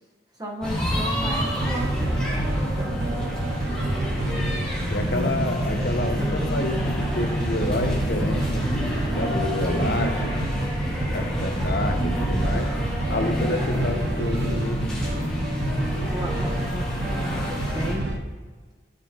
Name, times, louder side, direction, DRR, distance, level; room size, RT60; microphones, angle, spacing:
voice 1, 0.4-3.2 16.1-18.2, equal, 20° right, -1 dB, 1.3 m, -35 dB
sound 1, 0.6-17.9, equal, 5° left, 2.0 m, -28 dB
sound 2, 1.2-18.2, right 2 dB, 75° right, 0.8 m, -30 dB
voice 2, 4.9-8.7 9.2-10.5 11.1-12.7 13.1-14.8, left 1 dB, 60° left, 3 dB, 1.1 m, -28 dB
13.0 x 6.6 x 3.0 m, 1.4 s
head